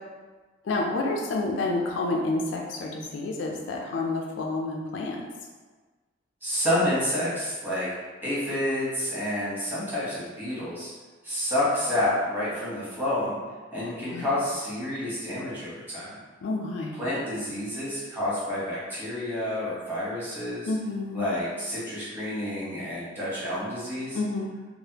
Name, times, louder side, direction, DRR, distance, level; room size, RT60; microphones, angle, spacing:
voice 1, 0.6-5.2 14.1-14.3 16.4-16.9 20.7-21.3 24.1-24.5, left 2 dB, 70° left, 0 dB, 0.4 m, -29 dB
voice 2, 6.4-7.9 8.2-10.9 11.2-13.4 13.7-16.1 17.0-20.7 21.1-24.2, left 1 dB, 10° right, -10 dB, 1.0 m, -29 dB
3.3 x 2.0 x 2.8 m, 1.3 s
head